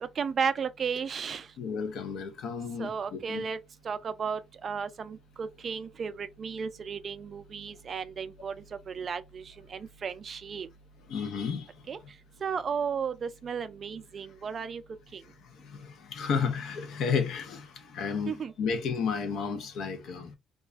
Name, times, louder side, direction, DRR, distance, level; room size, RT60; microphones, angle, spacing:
voice 1, 0.2-1.5 2.8-3.6 3.8-8.5 8.9-10.7 11.9-12.0 12.4-14.8 15.1-15.2 18.3-18.5, right 6 dB, 45° right, 0.3 m, -34 dB
voice 2, 1.6-3.4 11.1-11.7 15.6-20.4, left 6 dB, 75° left, 0.6 m, -32 dB
2.3 x 2.2 x 2.3 m
cardioid pair, 100°, 0 cm